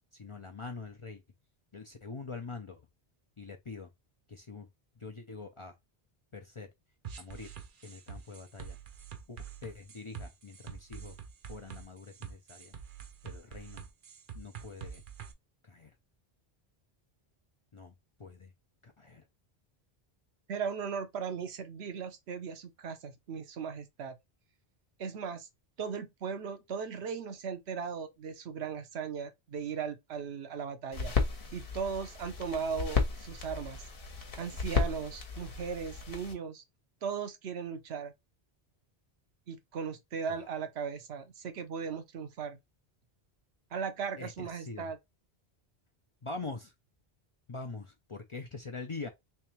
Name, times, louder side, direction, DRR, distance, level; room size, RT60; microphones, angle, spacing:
voice 1, 0.1-1.2 1.7-2.8 3.4-3.9 4.3-4.7 5.0-5.7 6.3-6.7 7.2-7.5 7.8-8.8 9.3-11.2 11.5-12.7 13.2-13.9 14.3-15.0 15.6-15.9 17.7-17.9 18.2-18.5 18.8-19.2 44.2-44.9 46.2-46.7 47.5-49.1, left 3 dB, 40° left, 0.5 m, -44 dB
sound 1, 7.0-15.3, right 7 dB, 55° right, 0.8 m, -45 dB
voice 2, 20.5-24.2 25.0-25.5 25.8-31.2 31.5-33.9 34.4-36.6 37.0-38.1 39.5-42.6 43.7-45.0, right 6 dB, 80° right, 1.0 m, -37 dB
sound 2, 30.9-36.3, left 4 dB, 60° left, 1.1 m, -34 dB
3.3 x 3.3 x 3.0 m
omnidirectional pair, 1.1 m